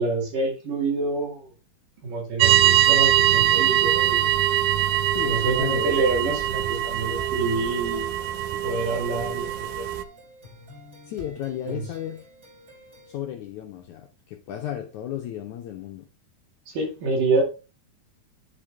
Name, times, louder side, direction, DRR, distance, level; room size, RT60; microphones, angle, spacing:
voice 1, 0.0-1.5 2.0-4.3 5.3-8.1 8.6-9.9 11.7-11.8 16.7-17.4, right 3 dB, 60° right, 3.9 m, -27 dB
sound 1, 2.4-10.0, right 12 dB, 80° right, 1.8 m, -22 dB
voice 2, 5.1-6.0 11.1-12.3 13.1-16.1, left 11 dB, 80° left, 1.7 m, -34 dB
sound 2, 5.2-13.2, right 1 dB, 30° right, 4.0 m, -48 dB
10.5 x 5.1 x 3.6 m
omnidirectional pair, 4.4 m